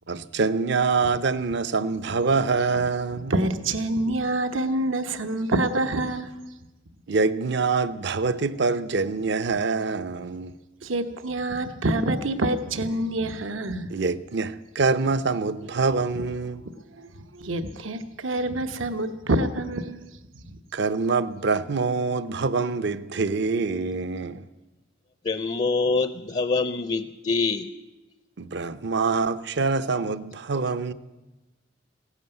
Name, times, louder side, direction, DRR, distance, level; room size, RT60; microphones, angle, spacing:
voice 1, 0.1-3.3 7.1-10.5 13.9-16.6 20.7-24.5 28.4-30.9, right 4 dB, 60° right, 0.7 m, -25 dB
voice 2, 3.3-6.3 10.8-13.9 16.9-20.1 20.4-20.6, right 1 dB, 85° right, 1.0 m, -27 dB
voice 3, 25.2-27.7, left 4 dB, 35° left, 0.5 m, -25 dB
16.0 x 11.5 x 7.8 m
head